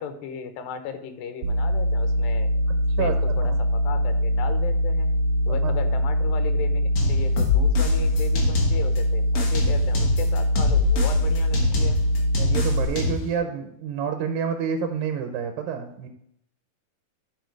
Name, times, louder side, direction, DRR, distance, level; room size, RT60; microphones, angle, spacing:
voice 1, 0.0-2.5 3.0-5.1 5.5-12.0, left 7 dB, 85° left, 8 dB, 2.7 m, -36 dB
sound 1, 1.4-12.9, equal, 65° right, 2.0 m, -23 dB
voice 2, 3.0-3.6 5.5-5.7 12.4-16.1, right 7 dB, 85° right, 6 dB, 2.6 m, -29 dB
sound 2, 7.0-9.0 9.4-13.3, left 4 dB, 50° left, 2.4 m, -25 dB
11.5 x 4.8 x 4.6 m, 0.72 s
omnidirectional pair, 4.0 m